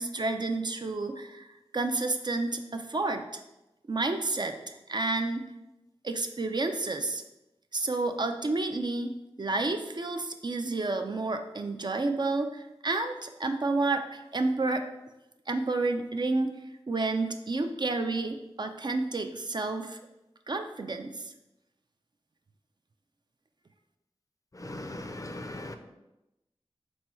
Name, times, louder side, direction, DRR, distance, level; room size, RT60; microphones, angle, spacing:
voice 1, 0.0-1.5 1.7-3.4 3.9-5.5 6.0-7.2 7.7-14.9 15.5-16.5 16.9-20.0 20.5-21.3, right 3 dB, 45° right, 6 dB, 0.3 m, -30 dB
voice 2, 24.5-25.8, left 1 dB, 35° left, 6 dB, 0.4 m, -39 dB
4.2 x 2.2 x 4.3 m, 0.94 s
wide cardioid pair, 45°, 10 cm